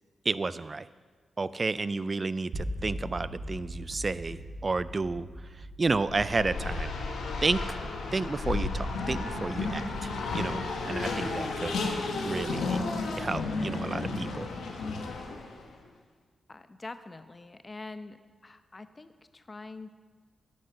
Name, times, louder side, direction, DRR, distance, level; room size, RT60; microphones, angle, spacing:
voice 1, 0.3-0.9 1.4-5.3 5.8-6.9 7.4-7.6 8.1-11.8 12.2-12.8 13.2-14.5, right 3 dB, 40° right, 16 dB, 0.4 m, -31 dB
sound 1, 2.5-12.5, equal, 75° right, 3.0 m, -42 dB
Race car auto racing, 6.0-15.6, left 3 dB, 90° left, 1.2 m, -33 dB
voice 2, 16.5-18.2 18.4-19.9, left 3 dB, 35° left, 11 dB, 0.8 m, -44 dB
11.5 x 6.5 x 6.7 m, 1.5 s
cardioid pair, 55°, 0 cm